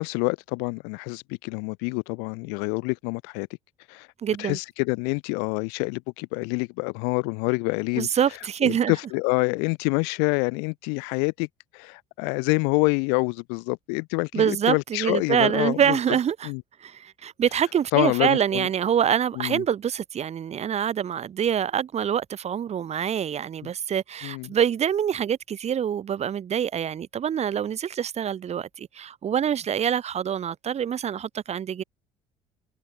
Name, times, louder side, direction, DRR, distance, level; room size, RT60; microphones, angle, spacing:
voice 1, 0.0-3.5 3.9-4.1 4.4-8.1 8.6-11.5 11.7-16.0 16.4-16.6 17.9-18.7 19.4-19.6 24.2-24.5, left 39 dB, 75° left, 1.1 m, -26 dB
voice 2, 4.2-4.6 8.0-8.9 14.3-16.5 16.8-31.8, right 9 dB, 40° right, 1.0 m, -25 dB
hypercardioid pair, 70°, 17 cm